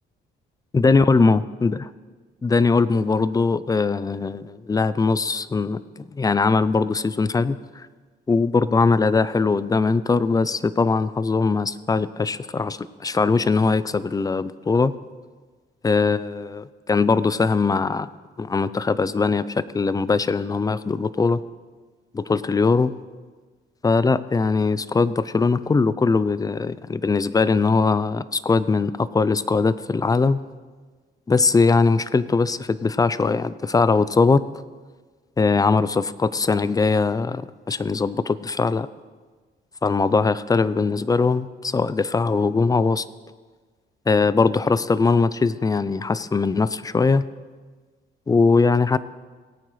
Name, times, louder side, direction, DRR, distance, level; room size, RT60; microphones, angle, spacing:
voice 1, 0.7-1.9 2.4-7.9 8.3-14.9 15.8-18.1 18.4-21.4 22.1-22.9 23.8-30.4 31.3-34.4 35.4-38.9 39.8-43.1 44.1-47.2 48.3-49.0, left 4 dB, 20° left, 16 dB, 0.4 m, -21 dB
19.0 x 8.8 x 3.2 m, 1.4 s
cardioid pair, 90°, 20 cm